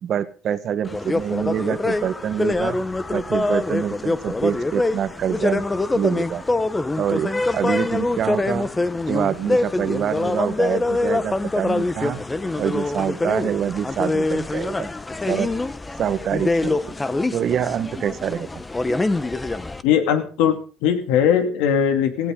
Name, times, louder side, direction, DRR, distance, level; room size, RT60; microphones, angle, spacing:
voice 1, 0.0-2.8 3.1-5.6 5.9-6.4 7.0-8.7 9.1-12.2 12.6-14.9 15.3-15.5 16.0-16.8 17.3-18.5, right 9 dB, 45° right, 13 dB, 1.2 m, -25 dB
sound 1, 0.9-19.8, left 2 dB, 15° left, 0.8 m, -24 dB
voice 2, 19.8-22.3, left 8 dB, 85° left, 7 dB, 2.5 m, -20 dB
17.0 x 15.5 x 3.7 m, 0.37 s
cardioid pair, 135°, 0 cm